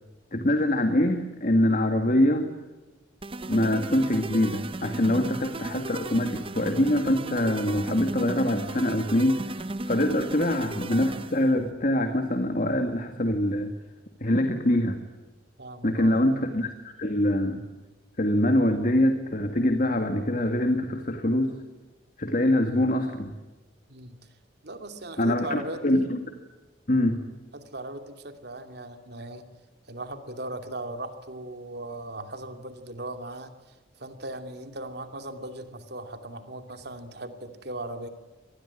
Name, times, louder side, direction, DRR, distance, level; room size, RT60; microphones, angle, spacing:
voice 1, 0.3-2.5 3.5-13.7 14.2-15.0 15.8-17.6 18.2-21.5 22.2-23.3 25.2-26.2 26.9-27.2, left 1 dB, 45° left, 6 dB, 2.0 m, -24 dB
sound 1, 3.2-11.5, right 2 dB, 30° right, 0.8 m, -36 dB
voice 2, 15.6-16.2 23.9-24.2 24.6-26.0 27.5-29.5 29.9-38.1, right 2 dB, 60° right, 7 dB, 2.7 m, -38 dB
25.5 x 20.0 x 9.9 m, 1.2 s
head